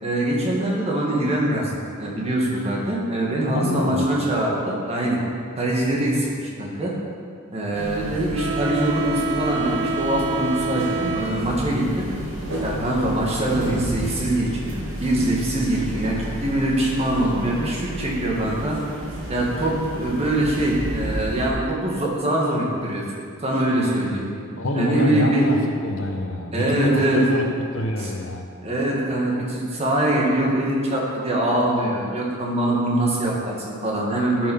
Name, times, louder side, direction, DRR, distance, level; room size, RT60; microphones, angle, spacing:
voice 1, 0.0-5.2 5.6-6.9 7.5-12.1 12.6-18.8 19.3-23.0 23.4-24.3 24.7-25.5 26.5-27.2 28.0-28.1 28.6-34.5, right 1 dB, 30° right, -3 dB, 2.0 m, -23 dB
voice 2, 3.5-4.1 24.6-28.5, left 1 dB, 75° left, 3 dB, 1.0 m, -25 dB
sound 1, 7.7-21.5, right 2 dB, 70° right, 2.1 m, -30 dB
12.5 x 6.1 x 5.6 m, 2.2 s
head